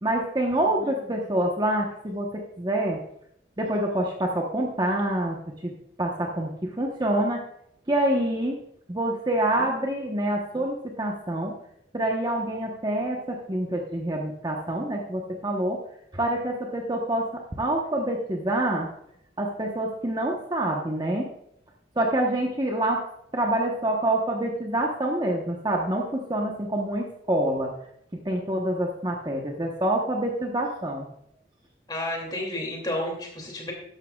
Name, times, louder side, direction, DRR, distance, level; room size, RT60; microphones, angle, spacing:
voice 1, 0.0-3.0 3.6-5.4 5.6-5.7 6.0-7.4 7.9-8.6 8.9-11.5 11.9-15.8 16.1-18.9 19.4-21.3 22.0-23.0 23.3-27.7 28.1-31.1, right 1 dB, 25° right, 0 dB, 1.0 m, -26 dB
voice 2, 31.9-33.7, left 1 dB, 25° left, 0 dB, 2.6 m, -31 dB
13.5 x 11.0 x 2.4 m, 0.73 s
head